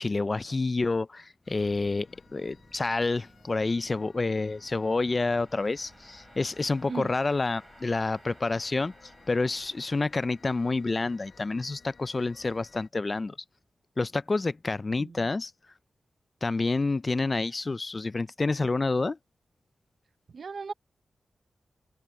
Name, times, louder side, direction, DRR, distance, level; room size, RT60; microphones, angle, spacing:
voice 1, 0.0-8.9 9.3-13.4 14.0-15.5 16.4-19.2, left 3 dB, 30° left, 0.3 m, -28 dB
sound 1, 1.4-12.9, left 5 dB, 50° left, 7.2 m, -57 dB
sound 2, 2.2-13.4, right 2 dB, 25° right, 4.1 m, -58 dB
voice 2, 15.0-15.3 20.3-20.7, right 5 dB, 55° right, 0.7 m, -36 dB
wide cardioid pair, 125°, 0 cm